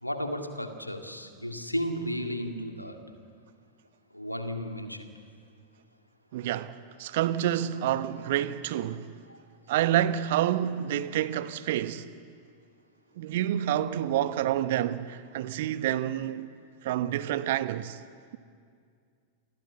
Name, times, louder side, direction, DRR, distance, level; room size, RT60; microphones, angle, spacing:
voice 1, 0.0-3.0 4.1-5.1 9.3-9.4, equal, 90° left, 2.1 m, -34 dB
voice 2, 6.3-9.1 9.7-12.1 13.2-16.5 16.8-18.0, right 12 dB, 55° right, 1.1 m, -28 dB
28.5 x 21.0 x 8.0 m
figure-of-eight pair, 90°, 0 cm